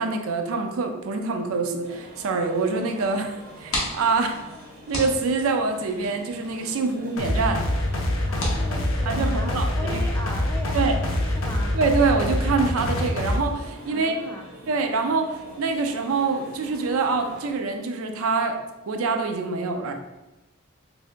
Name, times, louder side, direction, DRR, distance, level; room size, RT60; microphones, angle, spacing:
voice 1, 0.0-3.3 3.6-4.3 4.9-7.6 9.1-9.8 10.7-10.9 11.7-14.2 14.7-18.6 18.9-19.9, right 4 dB, 80° right, 5 dB, 0.4 m, -25 dB
sound 1, 1.8-17.5, right 1 dB, 40° right, 0.7 m, -45 dB
sound 2, 3.4-9.7, left 1 dB, 90° left, 1.0 m, -36 dB
sound 3, 7.2-13.4, left 1 dB, 70° left, 0.5 m, -25 dB
voice 2, 8.3-11.8 13.9-14.5, left 1 dB, 10° left, -1 dB, 0.3 m, -38 dB
2.8 x 2.6 x 3.3 m, 1.0 s
head